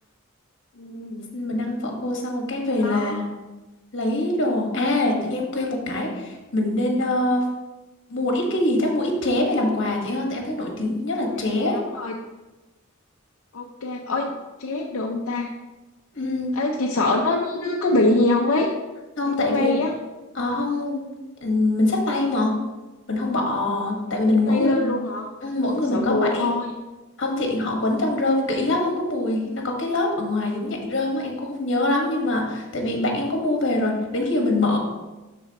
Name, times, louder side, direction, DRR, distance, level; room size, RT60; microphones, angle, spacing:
voice 1, 0.8-1.3 2.8-3.2 11.6-12.1 13.5-14.3 14.6-15.5 16.6-18.7 19.3-19.9 24.4-25.3 25.9-26.7, left 2 dB, 80° left, 0 dB, 0.6 m, -24 dB
voice 2, 1.3-3.3 3.9-7.5 8.1-11.8 16.1-16.5 19.2-19.8 20.3-21.0 21.4-22.6 23.1-25.0 25.4-26.5 27.2-34.8, left 2 dB, 60° left, 0 dB, 1.4 m, -24 dB
11.5 x 4.1 x 2.9 m, 1.1 s
head